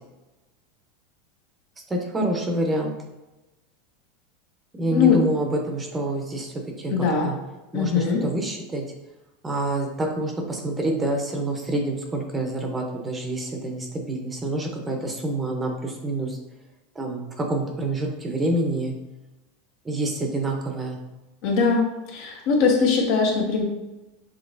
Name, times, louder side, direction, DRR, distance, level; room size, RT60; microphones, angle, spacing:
voice 1, 1.9-2.9 4.8-6.5 6.8-6.9 7.2-7.4 7.7-8.8 9.4-16.4 17.0-18.9 19.8-21.0, right 1 dB, 15° right, 1 dB, 0.8 m, -27 dB
voice 2, 6.9-7.3 7.7-8.2 21.4-21.8 22.1-23.6, left 5 dB, 60° left, 0 dB, 1.1 m, -21 dB
6.1 x 3.1 x 2.6 m, 1.0 s
supercardioid pair, 125°, 0 cm